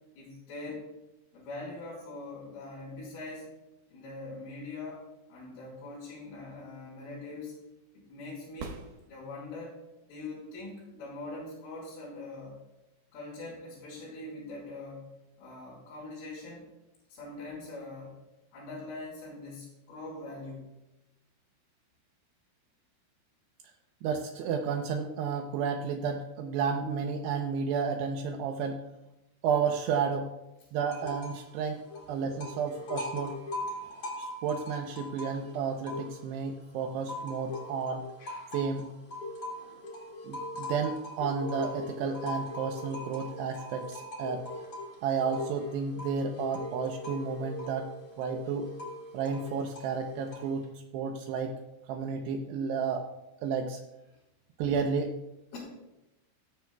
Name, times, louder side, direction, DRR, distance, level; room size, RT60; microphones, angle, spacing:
voice 1, 0.2-0.9 1.3-3.5 3.9-5.0 5.3-7.6 7.9-8.8 9.1-9.8 10.1-12.6 13.1-15.1 15.4-16.7 17.1-18.2 18.5-20.6 55.5-55.6, left 2 dB, 75° left, -9 dB, 7.0 m, -42 dB
sound 1, 8.6-9.7 13.6-13.7, right 4 dB, 70° right, 2.6 m, -44 dB
voice 2, 24.0-28.8 29.4-30.3 30.7-33.4 34.2-38.1 38.5-38.9 40.2-44.4 45.0-47.9 48.2-48.7 49.1-51.6 51.9-53.1 53.4-53.8 54.6-55.2, right 6 dB, 85° right, 3 dB, 2.4 m, -32 dB
sound 2, 30.9-31.5 31.8-36.4 36.8-50.6, left 2 dB, 35° left, 1.6 m, -40 dB
17.5 x 14.0 x 2.3 m, 0.94 s
omnidirectional pair, 5.9 m